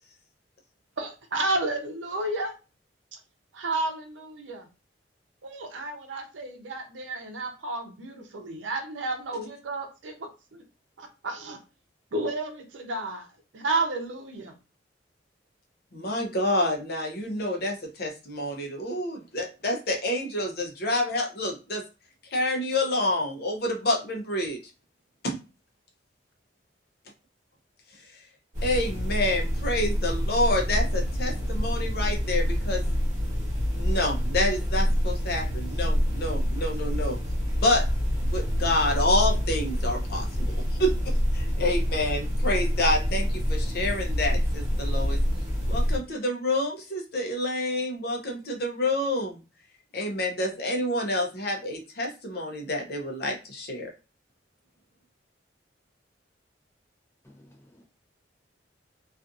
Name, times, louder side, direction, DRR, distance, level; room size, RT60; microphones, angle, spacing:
voice 1, 1.0-2.5 3.5-4.7 5.4-10.6 11.0-11.6 12.1-13.3 13.5-14.5, right 2 dB, 85° right, 4 dB, 0.6 m, -31 dB
voice 2, 15.9-21.8 22.3-24.6 25.2-25.4 28.1-28.2 28.6-32.8 33.7-37.2 37.6-37.8 38.3-45.2 45.7-49.4 49.9-53.9, left 1 dB, 55° left, 1 dB, 0.6 m, -28 dB
sound 1, 28.5-46.0, equal, 40° right, 1.1 m, -27 dB
voice 3, 57.2-57.8, left 1 dB, 15° left, 0 dB, 0.6 m, -55 dB
2.4 x 2.4 x 2.6 m, 0.30 s
head